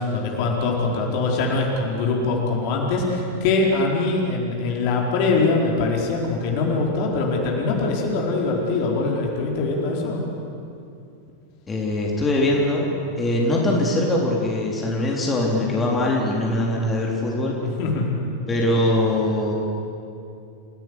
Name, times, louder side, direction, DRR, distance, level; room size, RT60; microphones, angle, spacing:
voice 1, 0.0-10.2 17.6-18.2, left 3 dB, 45° left, -1 dB, 4.5 m, -23 dB
voice 2, 11.7-12.9 13.2-17.6 18.5-19.5, left 1 dB, 15° left, -2 dB, 3.8 m, -22 dB
28.5 x 16.5 x 8.3 m, 2.5 s
figure-of-eight pair, 90°, 0 cm